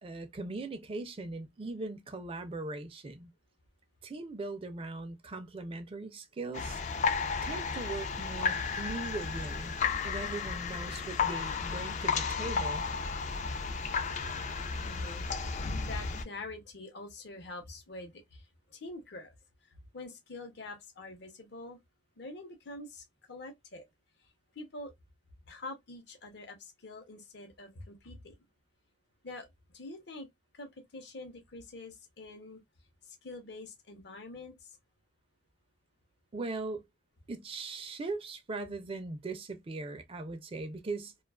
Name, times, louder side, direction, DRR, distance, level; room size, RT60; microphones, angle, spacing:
voice 1, 0.0-3.3 4.0-6.8 7.4-9.7 10.0-12.9 36.3-36.9 37.3-41.1, right 3 dB, 30° right, 0.4 m, -39 dB
sound 1, 6.5-16.2, left 5 dB, 40° left, 0.4 m, -33 dB
voice 2, 14.8-19.3 19.9-21.8 22.2-23.8 24.6-24.9 25.5-28.4 29.2-29.5 29.7-30.3 30.5-32.6 33.0-34.5, left 2 dB, 65° left, 0.8 m, -46 dB
2.3 x 2.3 x 2.2 m
head